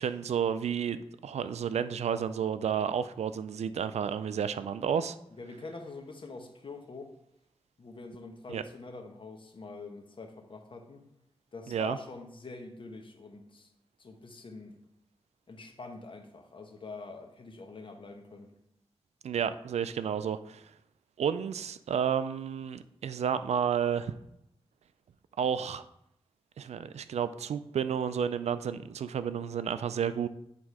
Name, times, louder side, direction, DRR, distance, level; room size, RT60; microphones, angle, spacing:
voice 1, 0.0-5.2 8.5-8.6 11.7-12.0 19.2-20.6 21.2-24.1 25.4-25.8 26.6-30.3, right 8 dB, 90° right, 13 dB, 0.4 m, -31 dB
voice 2, 5.3-7.1 7.8-11.0 11.5-13.7 14.0-14.8 15.5-18.5, left 3 dB, 50° left, 4 dB, 1.1 m, -45 dB
8.3 x 3.7 x 4.7 m, 0.78 s
wide cardioid pair, 85°, 11 cm